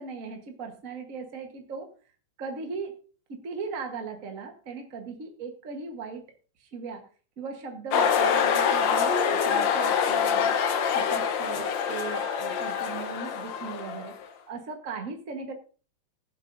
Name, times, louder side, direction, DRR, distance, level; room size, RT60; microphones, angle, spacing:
voice 1, 0.0-1.9 2.4-3.0 3.3-6.3 6.6-7.1 7.4-10.6 10.9-14.2 14.5-15.5, right 4 dB, 50° right, 4 dB, 0.9 m, -38 dB
sound 1, 7.9-14.2, left 7 dB, 80° left, 1.0 m, -25 dB
21.0 x 7.7 x 2.6 m, 0.39 s
omnidirectional pair, 3.3 m